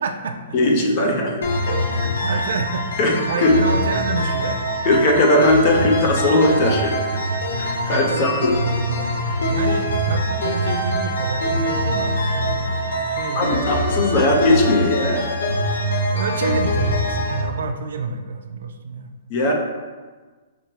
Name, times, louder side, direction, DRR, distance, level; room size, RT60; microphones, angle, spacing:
voice 1, 0.0-1.1 1.6-1.9 2.2-2.9 3.3-4.7 5.0-5.3 7.9-13.8 16.1-19.1, right 4 dB, 70° right, 6 dB, 0.4 m, -29 dB
voice 2, 0.5-1.4 3.0-3.6 4.8-7.0 7.6-8.5 13.3-15.3 19.3-19.5, left 1 dB, 30° left, 1 dB, 0.6 m, -18 dB
sound 1, 1.4-17.4, equal, 80° left, 0.7 m, -23 dB
6.0 x 2.1 x 2.8 m, 1.4 s
hypercardioid pair, 165°, 0 cm